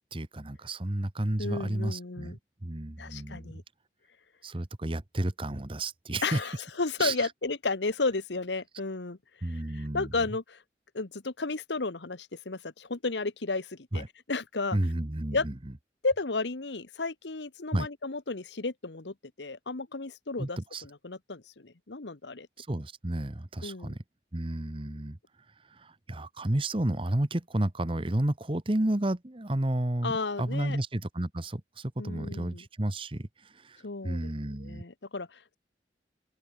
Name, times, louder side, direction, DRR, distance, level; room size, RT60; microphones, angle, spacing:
voice 1, 0.1-3.6 4.4-6.4 7.0-7.3 9.4-10.1 13.9-14.1 14.7-15.5 17.7-17.9 20.4-20.8 22.6-24.0 24.3-25.2 25.7-30.1 30.4-34.8, right 1 dB, 30° right, 1.2 m, -31 dB
voice 2, 1.4-2.4 3.0-3.6 6.2-9.2 9.5-10.6 10.9-14.8 15.3-15.5 16.0-22.5 23.6-24.0 30.0-30.8 32.0-32.6 33.8-34.3 34.6-35.6, left 3 dB, 80° left, 1.2 m, -33 dB
open air
head